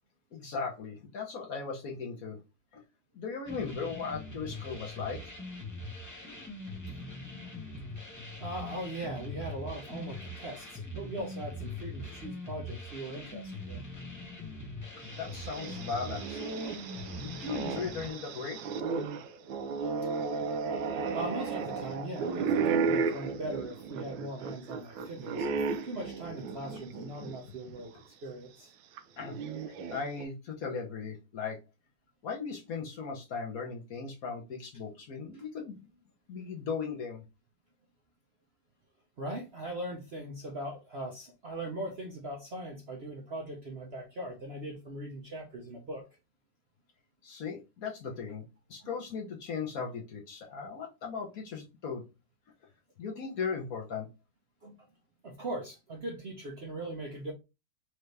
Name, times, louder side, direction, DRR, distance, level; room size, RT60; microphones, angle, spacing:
voice 1, 0.3-2.4 2.7-2.8 3.1-5.2 15.1-16.4 17.1-18.6 29.2-29.4 29.9-31.6 32.2-35.9 36.3-37.2 47.2-48.4 48.7-52.0 53.0-54.1, left 5 dB, 55° left, 0 dB, 1.2 m, -37 dB
sound 1, 3.5-18.1, left 2 dB, 20° left, 0.5 m, -42 dB
voice 2, 8.4-13.9 21.1-27.9 28.2-28.7 35.3-35.4 39.2-46.0 48.8-48.9 54.6-54.7 55.2-57.3, right 1 dB, 50° right, 0 dB, 0.8 m, -40 dB
sound 2, 15.1-27.4 27.8-27.9 29.0-30.2, right 5 dB, 85° right, 1.3 m, -34 dB
4.6 x 2.7 x 3.3 m, 0.26 s
omnidirectional pair, 2.0 m